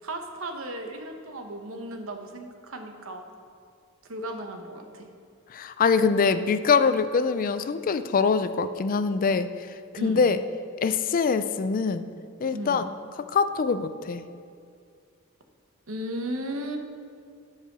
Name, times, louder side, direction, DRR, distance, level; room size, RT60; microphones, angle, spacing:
voice 1, 0.0-3.2 4.0-5.1 10.0-10.3 12.5-12.8 15.9-16.8, right 1 dB, 75° right, 4 dB, 1.0 m, -35 dB
voice 2, 5.5-9.5 10.0-10.4 10.8-12.0 12.4-12.9 13.3-14.2, left 5 dB, 40° left, 11 dB, 0.4 m, -23 dB
11.0 x 4.8 x 6.0 m, 2.4 s
head